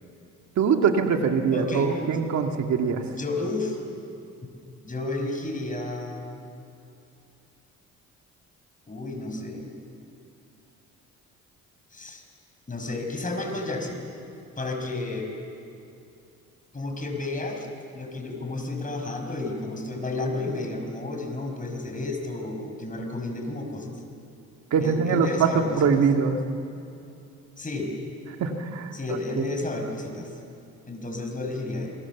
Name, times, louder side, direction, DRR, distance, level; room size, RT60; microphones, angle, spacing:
voice 1, 0.6-3.0 24.7-26.4 28.4-28.9 29.4-29.6, right 6 dB, 65° right, 4 dB, 2.0 m, -23 dB
voice 2, 1.5-2.2 3.1-3.8 4.8-6.4 8.9-9.7 11.9-12.2 12.7-14.0 14.6-15.4 16.7-17.7 17.9-23.9 24.8-25.9 27.6-27.9 28.9-30.3 30.9-32.0, left 2 dB, 25° left, 3 dB, 5.4 m, -31 dB
28.0 x 22.5 x 7.2 m, 2.7 s
cardioid pair, 90°, 30 cm